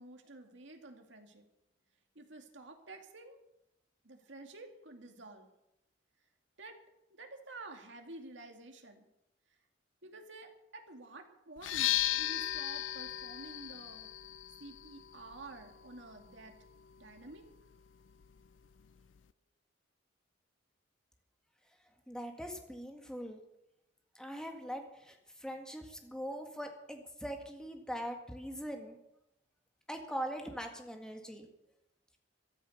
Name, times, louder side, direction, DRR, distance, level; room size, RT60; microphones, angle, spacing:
voice 1, 0.0-1.4 2.1-3.4 4.0-5.5 6.6-6.8 7.1-9.1 10.0-14.1 14.6-16.5 17.0-17.4, right 2 dB, 75° right, 4 dB, 2.4 m, -50 dB
sound 1, 11.6-19.3, left 14 dB, 90° left, 0.5 m, -38 dB
voice 2, 22.1-23.4 24.2-29.0 29.9-31.5, equal, 5° left, 3 dB, 1.9 m, -42 dB
14.0 x 13.0 x 6.6 m, 0.87 s
head